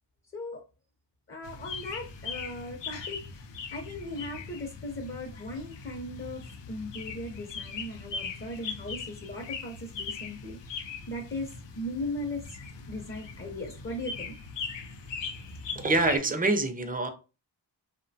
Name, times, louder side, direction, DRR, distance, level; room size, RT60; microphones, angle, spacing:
voice 1, 1.3-3.2 3.7-10.6 11.1-11.5 11.8-12.4 12.9-14.4 15.3-15.9, left 1 dB, 30° left, 0.6 m, -38 dB
sound 1, 1.4-16.2, left 5 dB, 85° left, 0.5 m, -40 dB
voice 2, 15.8-17.1, right 2 dB, 20° right, 0.4 m, -25 dB
2.6 x 2.1 x 2.6 m
cardioid pair, 65°, 42 cm